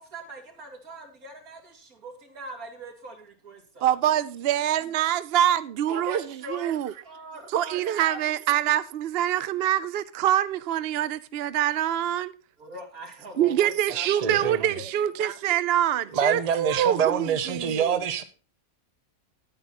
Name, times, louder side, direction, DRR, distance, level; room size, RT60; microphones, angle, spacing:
voice 1, 0.0-3.9 5.9-8.2 12.6-15.4, right 1 dB, 80° right, 3.0 m, -42 dB
voice 2, 3.8-6.2 6.5-6.9 7.5-12.3 13.4-17.9, right 11 dB, 60° right, 0.6 m, -25 dB
voice 3, 13.9-14.8 16.1-18.2, right 7 dB, 30° right, 0.9 m, -26 dB
10.0 x 8.9 x 4.2 m
omnidirectional pair, 1.5 m